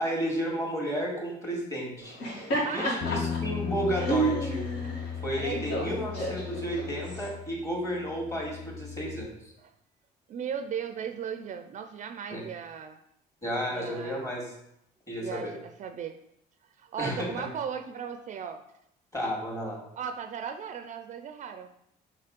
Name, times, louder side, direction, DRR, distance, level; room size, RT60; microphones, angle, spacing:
voice 1, 0.0-2.2 2.7-4.7 5.2-9.3 12.3-12.4 13.4-14.5 15.1-15.5 17.0-17.4 19.1-19.8, equal, 20° left, -2 dB, 2.1 m, -32 dB
Laughter, 2.0-7.3, right 2 dB, 75° left, 2.3 m, -32 dB
voice 2, 2.6-3.1 5.3-6.3 9.6-9.7 10.3-13.0 13.7-14.3 15.2-16.2 16.8-18.6 20.0-21.7, right 7 dB, 45° right, 8 dB, 0.4 m, -37 dB
sound 1, 3.0-9.3, left 7 dB, 45° left, 0.6 m, -37 dB
5.7 x 3.2 x 5.2 m, 0.78 s
cardioid pair, 110°, 17 cm